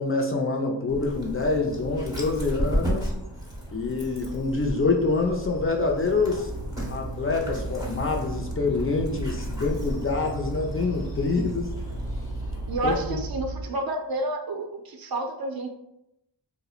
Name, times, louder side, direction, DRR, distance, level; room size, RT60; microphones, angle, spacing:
voice 1, 0.0-3.1 3.7-6.5 6.9-11.7 12.8-13.2, left 3 dB, 30° left, 0 dB, 0.4 m, -26 dB
Dog, 0.9-13.0, equal, 10° right, 0.9 m, -34 dB
sound 1, 6.4-13.6, right 2 dB, 60° left, 0.8 m, -35 dB
voice 2, 12.7-15.7, right 2 dB, 55° right, 4 dB, 0.5 m, -30 dB
2.7 x 2.0 x 2.3 m, 0.83 s
cardioid pair, 45°, 45 cm